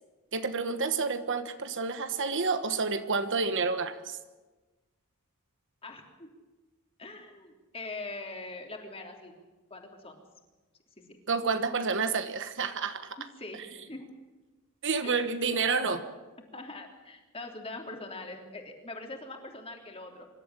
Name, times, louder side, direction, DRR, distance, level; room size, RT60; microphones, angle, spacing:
voice 1, 0.3-4.2 11.3-13.2 14.8-16.0, right 4 dB, 60° right, 10 dB, 1.3 m, -29 dB
voice 2, 5.8-6.3 7.0-9.3 9.7-10.2 11.0-11.2 13.4-14.1 15.0-16.0 16.5-20.3, left 2 dB, 25° left, 2 dB, 3.4 m, -43 dB
25.0 x 13.0 x 9.0 m, 1.2 s
head